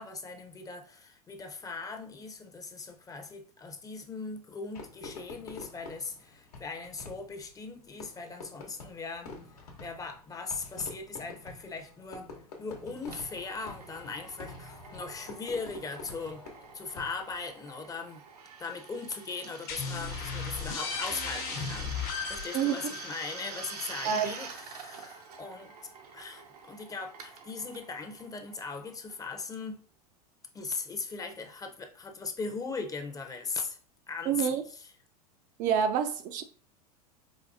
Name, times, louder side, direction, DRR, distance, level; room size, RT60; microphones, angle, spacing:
voice 1, 0.0-9.3 9.8-12.3 12.6-16.4 16.7-18.2 18.6-22.0 22.3-25.7 26.1-29.8 30.5-33.8 34.1-34.9, left 4 dB, 20° left, 0.6 m, -39 dB
Fireworks, 4.7-17.5, left 3 dB, 80° left, 1.1 m, -47 dB
Drill, 13.1-29.4, right 5 dB, 80° right, 0.7 m, -46 dB
sound 1, 19.7-25.1, left 6 dB, 50° left, 0.8 m, -37 dB
voice 2, 34.3-34.6 35.6-36.4, right 8 dB, 40° right, 0.4 m, -27 dB
4.9 x 2.2 x 2.6 m
hypercardioid pair, 100°, 20 cm